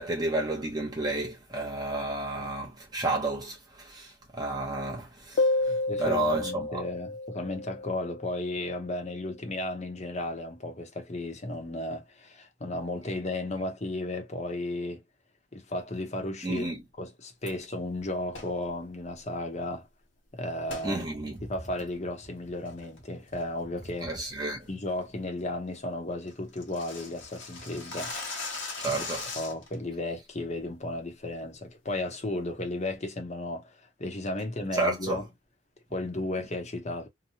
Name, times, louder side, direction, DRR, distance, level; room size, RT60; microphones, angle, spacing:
voice 1, 0.0-5.5 6.0-6.8 16.4-16.8 20.8-21.4 24.0-24.7 28.8-29.3 34.7-35.2, right 2 dB, 20° right, 0.7 m, -31 dB
sound 1, 5.4-8.7, left 2 dB, 55° left, 0.3 m, -30 dB
voice 2, 5.7-15.0 15.5-16.7 17.0-19.9 20.3-21.0 21.4-24.1 24.7-28.1 28.9-29.0 29.3-35.3 35.9-37.1, left 1 dB, 35° left, 0.8 m, -34 dB
sound 2, 18.3-18.6 20.7-20.9 21.4-21.5 22.0-22.3 22.6-23.0 23.3-23.6 23.9-24.0 24.4-24.7 25.0-25.1 25.5-25.6 25.7-25.8 26.1-29.8, left 3 dB, 80° left, 1.1 m, -39 dB
3.0 x 2.2 x 2.7 m
head